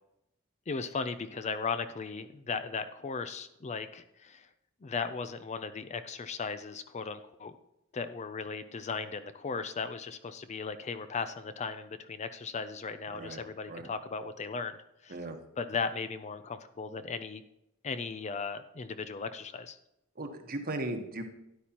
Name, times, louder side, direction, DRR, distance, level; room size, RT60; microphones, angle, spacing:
voice 1, 0.7-4.5 4.8-7.5 7.9-14.8 15.0-15.2 15.6-17.4 17.8-19.8, left 5 dB, 35° left, 11 dB, 0.5 m, -37 dB
voice 2, 20.2-21.2, right 2 dB, 45° right, 5 dB, 1.2 m, -37 dB
12.5 x 10.0 x 2.9 m, 0.84 s
head